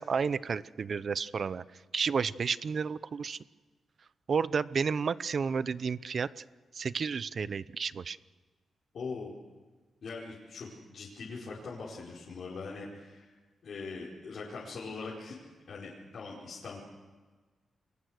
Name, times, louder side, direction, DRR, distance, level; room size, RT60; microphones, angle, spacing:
voice 1, 0.0-1.6 1.9-3.4 4.3-6.4 6.7-8.2, right 5 dB, 45° right, 17 dB, 0.7 m, -31 dB
voice 2, 8.9-9.3 10.0-13.3 13.6-15.4 15.7-16.8, left 4 dB, 55° left, -6 dB, 4.8 m, -41 dB
29.0 x 22.5 x 6.5 m, 1.3 s
wide cardioid pair, 145°, 0 cm